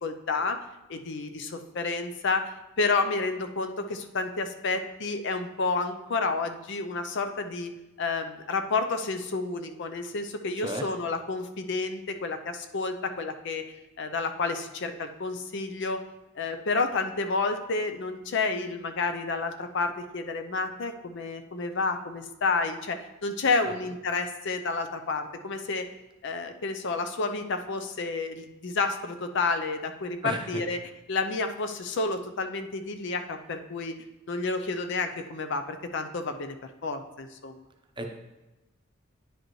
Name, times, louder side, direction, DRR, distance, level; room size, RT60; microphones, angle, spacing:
voice 1, 0.0-0.6 0.9-7.7 8.0-13.6 14.0-16.0 16.4-25.9 26.2-30.8 31.1-33.9 34.3-36.6 36.8-37.6, left 3 dB, 60° left, 7 dB, 0.5 m, -30 dB
voice 2, 10.6-10.9 23.7-23.8 30.2-30.6 38.0-38.1, right 2 dB, 25° right, 3 dB, 0.7 m, -34 dB
9.9 x 5.1 x 3.1 m, 1.0 s
head